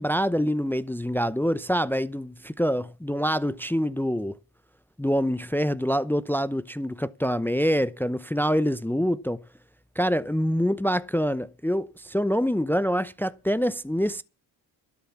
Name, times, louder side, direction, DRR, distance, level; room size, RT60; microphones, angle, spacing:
voice 1, 0.0-4.4 5.0-9.4 10.0-14.2, equal, 5° left, 0.7 m, -25 dB
12.5 x 8.1 x 7.1 m
hypercardioid pair, 50°, 48 cm